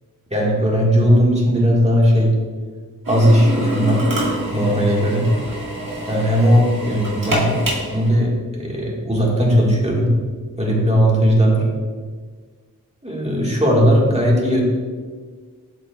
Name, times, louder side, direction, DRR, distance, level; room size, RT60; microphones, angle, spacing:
voice 1, 0.3-2.3 3.1-4.1 4.5-5.3 6.1-7.6 7.9-10.1 10.6-11.6 13.0-14.7, equal, 20° right, -3 dB, 1.6 m, -17 dB
Drill, 3.0-8.1, right 1 dB, 70° right, 1.8 m, -26 dB
12.0 x 4.4 x 2.3 m, 1.5 s
wide cardioid pair, 55°, 35 cm